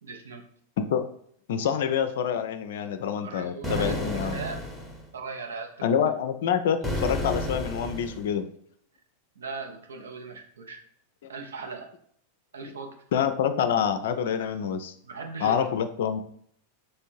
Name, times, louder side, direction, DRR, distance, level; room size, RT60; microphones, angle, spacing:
voice 1, 0.0-0.4 1.5-1.9 3.2-4.6 5.1-6.0 9.4-10.8 11.3-11.9 12.5-12.9 15.0-15.7, right 4 dB, 65° right, 3 dB, 0.8 m, -39 dB
voice 2, 1.5-4.4 5.8-8.5 13.1-14.9 15.4-16.2, left 8 dB, 55° left, 9 dB, 0.4 m, -26 dB
sound 1, 3.6-5.0 6.8-8.3, equal, 5° right, 0.9 m, -31 dB
3.5 x 3.2 x 4.4 m, 0.64 s
figure-of-eight pair, 90°, 0 cm